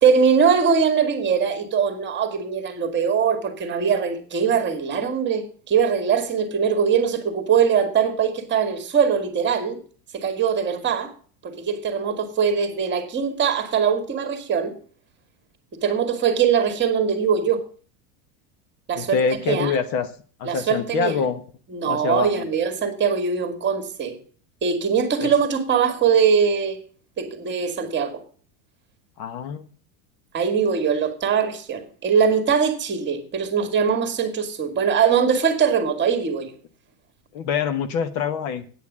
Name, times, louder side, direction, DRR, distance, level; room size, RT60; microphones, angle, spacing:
voice 1, 0.0-9.8 10.1-11.1 11.4-14.7 15.8-17.6 18.9-19.2 19.5-19.7 20.5-21.2 21.7-24.2 24.6-26.8 27.2-28.2 30.3-36.5, right 6 dB, 25° right, 2.0 m, -21 dB
voice 2, 18.9-20.1 20.4-21.4 21.8-22.5 25.2-25.3 29.2-29.6 37.3-38.6, left 6 dB, 50° left, 1.2 m, -25 dB
9.3 x 6.6 x 7.3 m
supercardioid pair, 130°, 46 cm